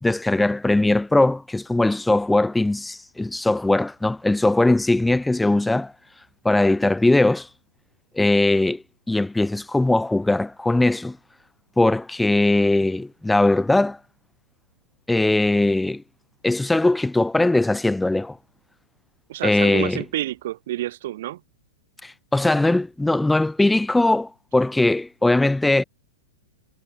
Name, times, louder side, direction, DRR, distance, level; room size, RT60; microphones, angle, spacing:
voice 1, 0.0-5.9 6.4-7.5 8.1-11.2 11.8-14.0 15.1-16.0 16.4-18.4 19.4-20.0 22.0-25.8, left 2 dB, 5° left, 0.5 m, -20 dB
voice 2, 19.3-21.4, right 14 dB, 65° right, 1.8 m, -29 dB
hypercardioid pair, 115°, 0 cm